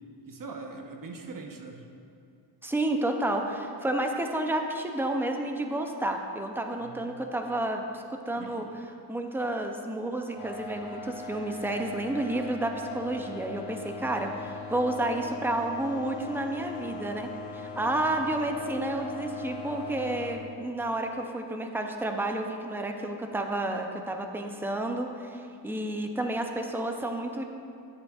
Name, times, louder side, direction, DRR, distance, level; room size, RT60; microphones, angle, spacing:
voice 1, 0.3-1.8 6.8-7.1 8.3-8.7 17.8-18.1, right 3 dB, 50° right, 3 dB, 0.8 m, -42 dB
voice 2, 2.6-8.6 9.1-27.4, right 1 dB, 5° right, 4 dB, 0.4 m, -31 dB
sound 1, 10.3-20.3, left 4 dB, 50° left, 1.5 m, -40 dB
11.0 x 8.7 x 2.3 m, 2.5 s
wide cardioid pair, 175°, 42 cm